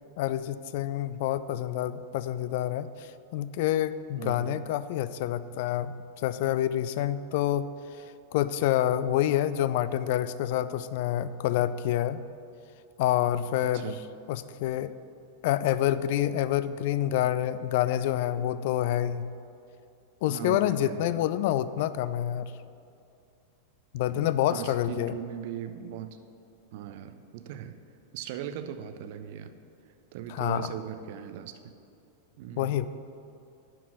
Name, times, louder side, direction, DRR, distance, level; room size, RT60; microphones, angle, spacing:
voice 1, 0.2-5.9 6.2-7.7 8.3-12.2 13.0-13.9 14.3-15.0 15.4-19.3 20.2-22.5 23.9-25.1 30.3-30.7 32.6-32.9, left 12 dB, 50° left, 15 dB, 0.3 m, -27 dB
voice 2, 4.2-4.6 13.7-14.0 20.3-21.2 24.1-26.2 26.7-27.8 28.1-29.5 30.1-31.6 32.4-32.8, right 10 dB, 50° right, 9 dB, 0.5 m, -39 dB
11.0 x 4.7 x 6.1 m, 2.6 s
figure-of-eight pair, 90°, 0 cm